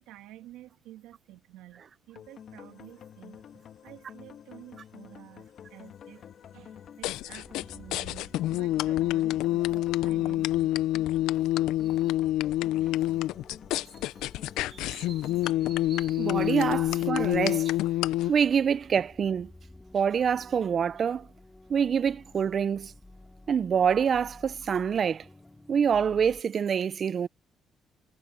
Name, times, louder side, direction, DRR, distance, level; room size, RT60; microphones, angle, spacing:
voice 1, 0.0-3.4 3.8-11.5 12.3-13.1, right 15 dB, 90° right, 2.0 m, -51 dB
sound 1, 2.1-17.2, left 9 dB, 65° left, 2.5 m, -50 dB
sound 2, 7.0-18.3, left 15 dB, 85° left, 0.6 m, -27 dB
sound 3, 7.4-26.4, left 2 dB, 15° left, 4.8 m, -53 dB
voice 2, 14.7-15.1 15.6-17.7 18.3-19.5 19.9-21.3 21.7-22.9 23.5-25.2 25.7-27.3, right 7 dB, 50° right, 0.7 m, -26 dB
supercardioid pair, 70°, 0 cm